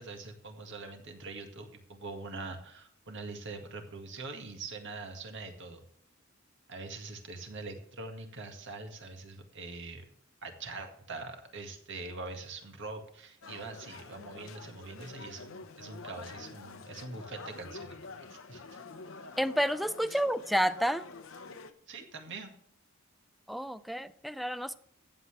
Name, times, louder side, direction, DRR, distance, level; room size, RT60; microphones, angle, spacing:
voice 1, 0.0-5.9 6.7-10.1 10.4-18.8 20.1-20.2 21.9-22.6, right 3 dB, 60° right, 5 dB, 1.9 m, -43 dB
sound 1, 13.4-21.7, left 4 dB, 70° left, 0.9 m, -47 dB
voice 2, 19.4-21.0 23.5-24.8, equal, ahead, 14 dB, 0.4 m, -30 dB
15.0 x 7.8 x 3.3 m, 0.66 s
head